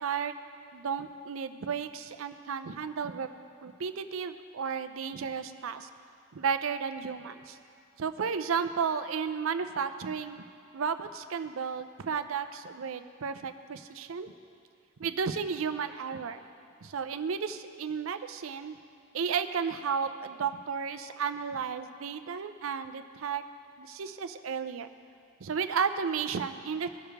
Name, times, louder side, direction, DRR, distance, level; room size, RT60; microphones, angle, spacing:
voice 1, 0.0-0.4 0.7-3.3 3.6-5.9 6.3-7.6 8.0-10.4 10.7-14.3 15.0-16.4 16.8-18.8 19.1-23.4 23.8-24.9 25.4-26.9, right 6 dB, 80° right, 10 dB, 0.5 m, -33 dB
18.0 x 6.5 x 3.4 m, 2.4 s
head